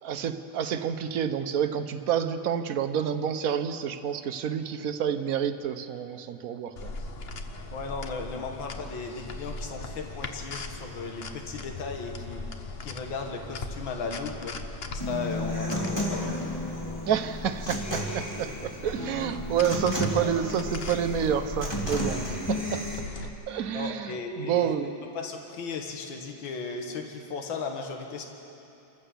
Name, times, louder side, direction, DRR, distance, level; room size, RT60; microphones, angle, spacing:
voice 1, 0.0-6.9 17.1-22.2 22.5-22.8 23.5-25.0, right 8 dB, 55° right, 8 dB, 1.1 m, -29 dB
Lovely Cube Problem (Right channel only), 6.8-23.3, left 2 dB, 40° left, 0.9 m, -39 dB
voice 2, 7.7-12.4 12.8-14.6 14.9-16.5 23.7-28.3, left 4 dB, 75° left, 3 dB, 2.2 m, -36 dB
Human voice / Acoustic guitar, 15.0-23.0, equal, 10° left, 3.0 m, -33 dB
28.0 x 15.0 x 7.0 m, 2.8 s
omnidirectional pair, 2.1 m